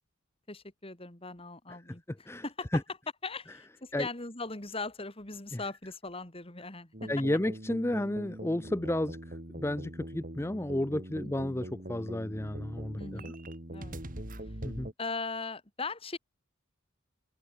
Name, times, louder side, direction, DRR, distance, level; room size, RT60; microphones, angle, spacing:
voice 1, 0.5-2.8 3.2-7.1 11.2-11.5 13.0-13.3 13.7-14.0 15.0-16.2, left 3 dB, 30° left, 3.0 m, -39 dB
voice 2, 2.1-2.4 2.7-2.8 3.9-4.1 5.5-5.6 7.1-9.2 9.6-13.2 14.6-14.9, left 1 dB, 15° left, 0.6 m, -32 dB
sound 1, 6.9-14.9, right 1 dB, 45° right, 3.1 m, -42 dB
head